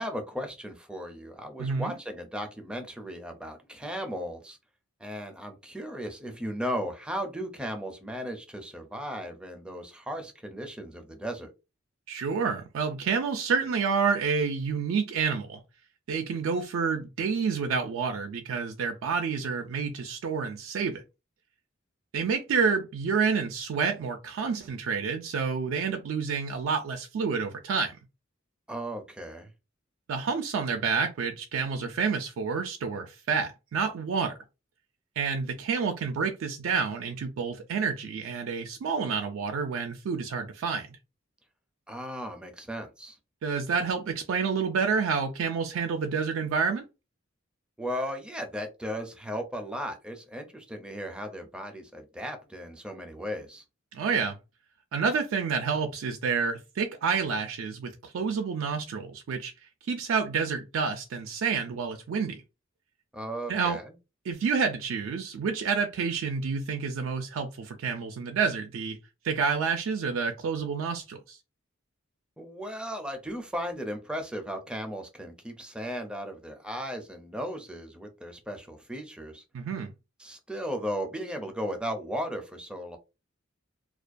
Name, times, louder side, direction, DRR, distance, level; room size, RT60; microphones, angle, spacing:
voice 1, 0.0-4.6 5.0-11.5 28.7-29.5 41.9-43.2 47.8-53.6 63.1-63.9 72.4-79.4 80.2-83.0, equal, 5° right, 0.4 m, -36 dB
voice 2, 1.6-1.9 12.1-15.6 16.1-21.0 22.1-28.0 30.1-34.3 35.2-40.9 43.4-46.9 53.9-54.4 54.9-59.5 59.9-62.4 63.5-63.8 64.3-69.0 69.2-71.4 79.5-79.9, right 5 dB, 70° right, 0.3 m, -29 dB
2.3 x 2.2 x 2.5 m
head